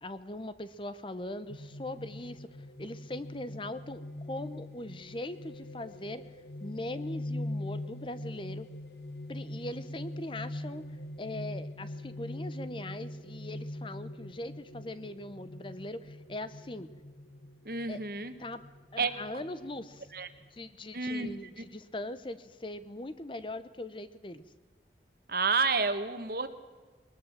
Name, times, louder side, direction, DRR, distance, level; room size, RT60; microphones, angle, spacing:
voice 1, 0.0-6.3 6.6-8.7 9.3-10.8 11.2-16.9 17.9-18.0 18.4-18.6 18.9-20.1 20.5-24.4, left 1 dB, 30° left, 13 dB, 0.9 m, -40 dB
sound 1, 1.5-20.7, left 1 dB, 70° left, 1.2 m, -43 dB
voice 2, 17.6-18.3 19.0-19.1 20.1-20.3 20.9-21.3 21.6-21.7 25.3-26.5, right 4 dB, 55° right, 10 dB, 1.6 m, -30 dB
21.0 x 19.5 x 7.5 m, 1.3 s
head